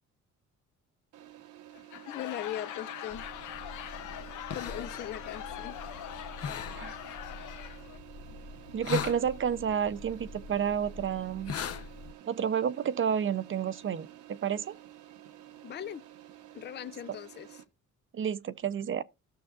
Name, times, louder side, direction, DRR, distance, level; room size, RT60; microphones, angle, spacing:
sound 1, 1.1-17.6, right 13 dB, 85° right, 1.1 m, -51 dB
Laughter / Crowd, 1.7-8.0, left 12 dB, 85° left, 0.7 m, -42 dB
voice 1, 2.1-3.3 4.5-5.8 15.6-16.0 16.5-17.5, left 11 dB, 35° left, 0.4 m, -39 dB
sound 2, 3.1-12.1, left 6 dB, 50° left, 0.8 m, -41 dB
voice 2, 8.7-11.5 12.3-14.8 18.1-19.0, right 8 dB, 40° right, 0.6 m, -30 dB
15.5 x 6.3 x 2.4 m
cardioid pair, 90°, 30 cm